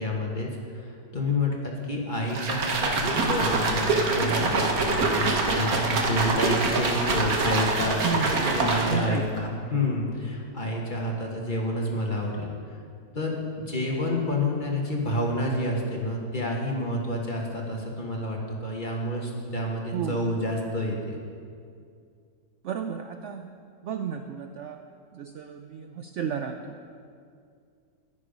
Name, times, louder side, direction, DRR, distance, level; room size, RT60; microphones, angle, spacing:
voice 1, 0.0-12.5 13.1-21.2, left 1 dB, 30° left, -1 dB, 1.5 m, -29 dB
sound 1, 2.3-9.2, right 3 dB, 60° right, 1.5 m, -25 dB
voice 2, 8.0-9.3 19.9-20.2 22.6-23.5 23.8-24.8 25.1-26.9, right 6 dB, 80° right, 6 dB, 0.6 m, -33 dB
11.0 x 11.0 x 5.1 m, 2.3 s
omnidirectional pair, 1.9 m